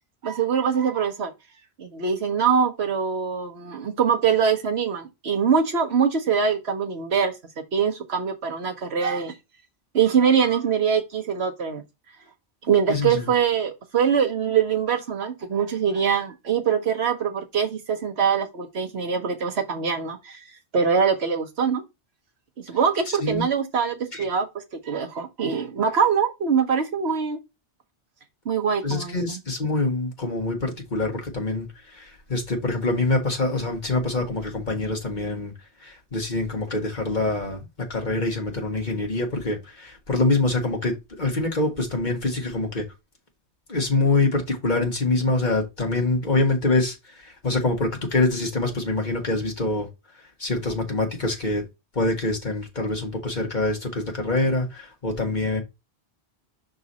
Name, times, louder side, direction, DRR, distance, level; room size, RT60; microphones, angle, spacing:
voice 1, 0.2-1.3 1.8-7.3 7.7-9.3 9.9-11.8 12.6-20.4 20.7-21.8 22.7-24.5 24.8-27.4 28.4-29.4, right 6 dB, 70° right, 1.3 m, -23 dB
voice 2, 12.9-13.3 23.1-23.4 24.1-24.2 28.8-35.5 35.8-42.9 43.7-49.9 50.4-51.6 51.9-55.6, left 2 dB, 45° left, 1.6 m, -25 dB
6.0 x 3.9 x 4.0 m
omnidirectional pair, 1.1 m